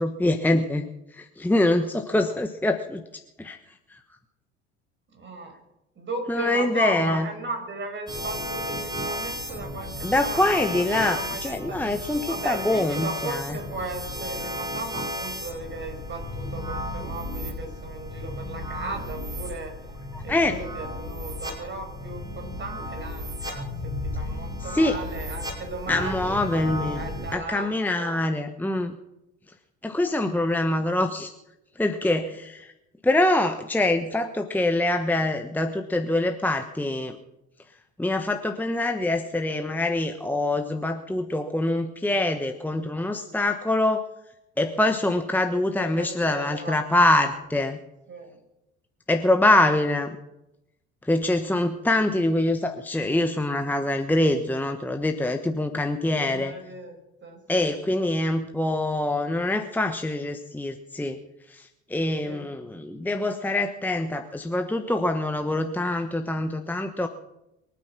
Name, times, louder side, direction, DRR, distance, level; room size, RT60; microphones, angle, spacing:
voice 1, 0.0-3.0 3.4-3.6 3.9-4.0 6.3-7.3 10.0-13.6 20.1-20.5 24.7-24.9 25.9-27.0 27.3-29.0 29.8-31.3 31.8-32.7 33.0-37.2 38.0-44.1 44.6-47.8 49.1-50.2 51.0-56.5 57.5-61.2 61.5-67.1, left 1 dB, 5° left, 6 dB, 1.2 m, -24 dB
voice 2, 5.1-5.5 6.0-11.9 12.3-19.7 20.2-26.4 26.9-27.7 28.0-28.2 45.5-47.4 48.1-48.4 49.7-49.8 56.1-57.8 62.2-62.5, right 3 dB, 30° right, 4 dB, 5.8 m, -36 dB
sound 1, 8.1-27.4, equal, 10° right, 5.5 m, -34 dB
23.5 x 9.5 x 6.2 m, 0.90 s
figure-of-eight pair, 65°, 35 cm